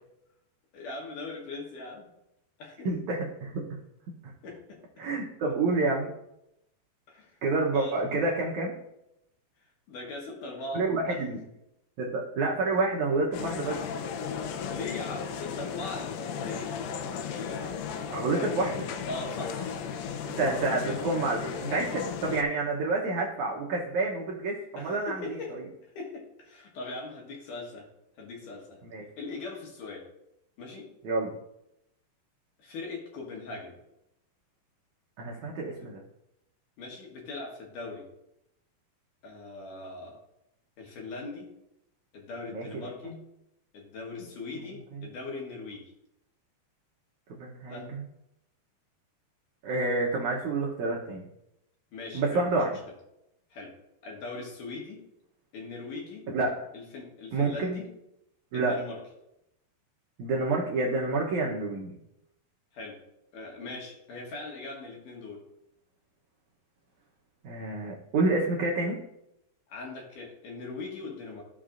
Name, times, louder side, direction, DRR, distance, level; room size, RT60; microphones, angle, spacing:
voice 1, 0.7-2.1 2.6-2.9 4.4-4.8 7.1-7.4 7.7-8.2 9.9-11.2 14.7-17.7 19.1-20.3 20.8-21.0 24.8-25.6 25.9-27.9 28.2-28.8 29.2-30.0 30.6-30.9 32.6-33.8 35.8-35.9 36.8-38.1 39.2-40.2 40.8-41.5 42.1-43.2 43.7-45.8 47.7-47.9 51.9-52.8 53.5-53.7 54.0-55.0 55.5-56.2 56.7-57.9 58.5-59.0 62.7-63.0 63.3-65.4 69.7-71.4, left 3 dB, 65° left, -1 dB, 2.5 m, -40 dB
voice 2, 2.8-3.6 5.0-6.1 7.4-8.7 10.7-11.4 12.0-13.8 18.1-18.9 20.4-25.6 28.9-29.0 31.0-31.3 35.2-36.0 42.5-43.2 47.4-48.0 49.6-51.2 52.1-52.7 56.3-56.6 57.3-57.8 58.5-58.8 60.2-61.9 67.4-69.0, right 3 dB, 80° right, -2 dB, 1.7 m, -28 dB
sound 1, 13.3-22.4, left 6 dB, 80° left, 2.0 m, -35 dB
14.0 x 6.1 x 2.5 m, 0.84 s
omnidirectional pair, 4.7 m